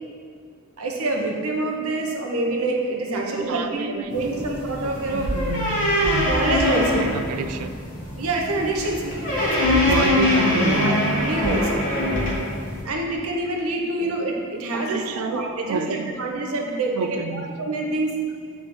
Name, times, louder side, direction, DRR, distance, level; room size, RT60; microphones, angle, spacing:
voice 1, 0.8-5.3 6.2-7.0 8.2-10.2 10.8-11.9 12.8-15.8 16.2-17.0 17.3-18.1, right 2 dB, 70° right, 1 dB, 0.9 m, -26 dB
voice 2, 3.1-4.4 5.1-6.4 6.8-7.8 9.6-11.0 14.0-14.2 14.7-16.2 16.9-17.5, right 4 dB, 85° right, 9 dB, 0.4 m, -30 dB
sound 1, 4.1-12.8, left 1 dB, 35° left, 1.6 m, -23 dB
8.4 x 3.4 x 4.3 m, 2.1 s
head